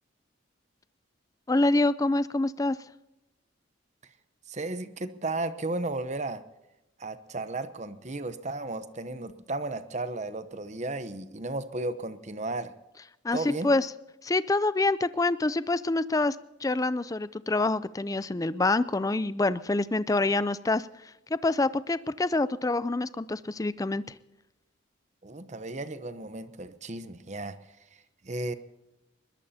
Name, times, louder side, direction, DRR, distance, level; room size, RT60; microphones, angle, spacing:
voice 1, 1.5-2.8 13.2-13.9 14.2-16.4 16.6-20.9 21.3-24.0, left 2 dB, 15° left, 16 dB, 0.4 m, -26 dB
voice 2, 4.5-6.4 7.0-12.7 13.3-13.7 25.2-27.6 27.9-28.5, right 2 dB, 35° right, 11 dB, 0.8 m, -34 dB
21.5 x 21.0 x 2.8 m, 0.98 s
head